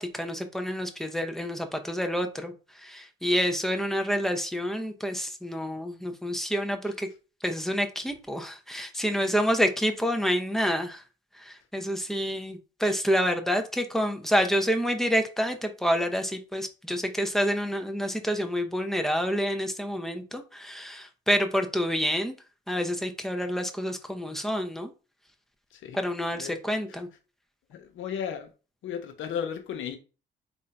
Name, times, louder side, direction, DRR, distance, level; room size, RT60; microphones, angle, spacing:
voice 1, 0.0-7.1 7.4-11.0 11.3-22.3 22.7-24.9 25.9-27.1, equal, ahead, 0.7 m, -28 dB
voice 2, 27.7-28.5 28.8-30.0, left 8 dB, 80° left, 0.8 m, -34 dB
3.7 x 2.6 x 4.4 m
cardioid pair, 90°, 20 cm